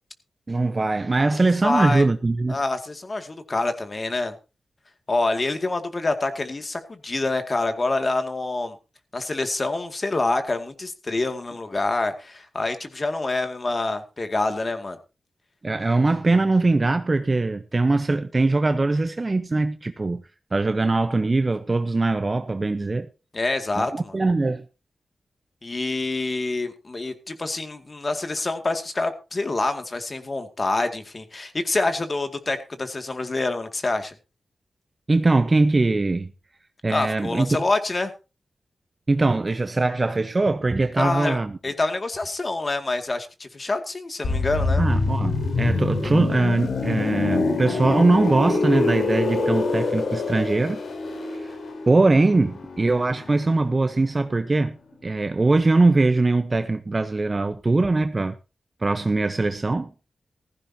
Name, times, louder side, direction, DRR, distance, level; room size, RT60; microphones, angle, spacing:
voice 1, 0.5-2.6 15.6-20.2 20.5-23.1 23.8-24.6 35.1-36.3 36.8-37.6 39.1-41.6 44.8-50.8 51.4-51.5 51.9-54.8 55.0-58.3 58.8-59.9, right 3 dB, 35° right, 0.9 m, -21 dB
voice 2, 1.3-2.1 2.5-4.3 5.1-8.8 9.1-15.0 23.3-24.2 25.6-34.1 36.9-38.1 41.0-44.8, left 2 dB, 40° left, 2.2 m, -26 dB
sound 1, 44.2-53.9 54.2-54.4, left 3 dB, 85° left, 3.7 m, -25 dB
15.5 x 15.0 x 2.8 m
cardioid pair, 65°, 0 cm